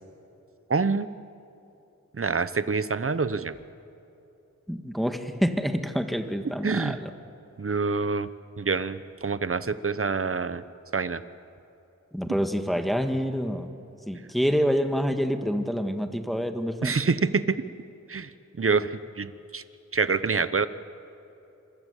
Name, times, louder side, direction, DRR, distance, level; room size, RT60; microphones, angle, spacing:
voice 1, 0.7-1.1 2.1-3.5 6.6-7.0 7.6-8.3 8.6-10.6 10.9-11.2 16.8-17.7 18.1-19.6 19.9-20.7, right 4 dB, 50° right, 14 dB, 1.0 m, -26 dB
voice 2, 4.7-7.1 12.1-13.7 14.1-17.0, equal, ahead, 6 dB, 1.8 m, -27 dB
27.0 x 23.5 x 8.4 m, 2.9 s
wide cardioid pair, 85°, 29 cm